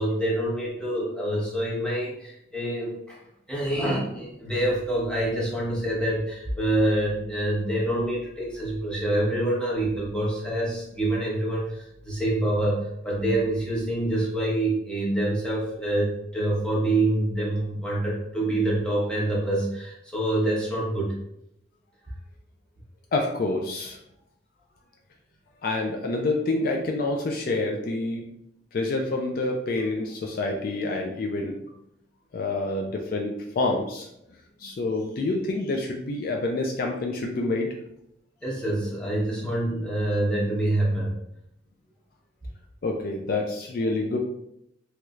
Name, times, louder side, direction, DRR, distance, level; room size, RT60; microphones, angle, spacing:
voice 1, 0.0-3.2 3.5-21.2 38.4-41.2, right 1 dB, 5° left, -6 dB, 0.9 m, -26 dB
voice 2, 23.1-24.0 25.6-28.3 28.7-31.6 32.3-34.1 34.6-37.7 42.8-44.2, left 2 dB, 50° left, 1 dB, 0.3 m, -27 dB
3.1 x 3.1 x 2.4 m, 0.79 s
head